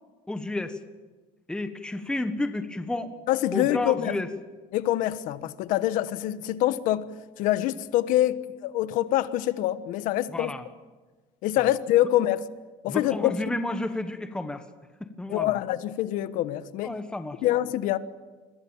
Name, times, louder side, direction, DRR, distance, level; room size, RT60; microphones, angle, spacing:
voice 1, 0.3-0.8 1.5-3.1 3.5-4.3 10.3-10.7 11.6-11.7 12.0-12.1 12.9-14.6 15.2-15.6 16.8-17.4, left 2 dB, 5° left, 1.4 m, -31 dB
voice 2, 3.3-4.1 4.7-10.5 11.4-12.4 12.8-13.3 15.3-16.9 17.4-18.0, left 14 dB, 70° left, 1.3 m, -25 dB
28.5 x 22.0 x 7.3 m
cardioid pair, 140°, 14 cm